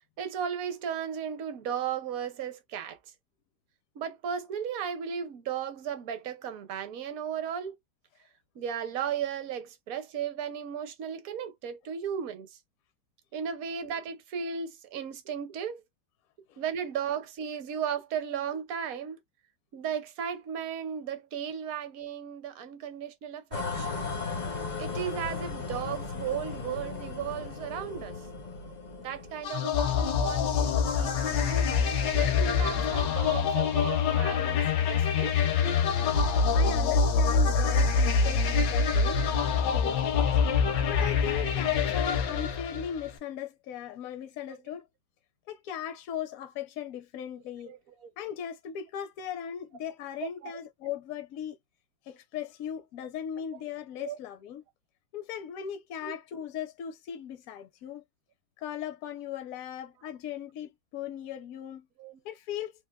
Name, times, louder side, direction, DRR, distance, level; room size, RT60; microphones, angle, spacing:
voice 1, 0.2-3.0 4.0-7.7 8.5-12.5 13.3-15.8 16.6-19.2 19.7-24.2 24.8-28.2 29.0-35.3 47.7-48.1 50.2-50.5 54.0-54.2 56.0-56.1 62.0-62.2, right 8 dB, 60° right, 1.1 m, -35 dB
sound 1, 23.5-29.5, left 4 dB, 50° left, 0.5 m, -36 dB
sound 2, 29.4-43.1, left 5 dB, 85° left, 1.4 m, -25 dB
voice 2, 36.5-39.2 39.7-40.4 40.9-44.8 45.5-47.7 48.2-51.6 52.1-54.6 55.1-58.0 58.6-61.9 62.2-62.7, left 9 dB, 70° left, 0.8 m, -38 dB
3.6 x 2.4 x 2.2 m
omnidirectional pair, 1.9 m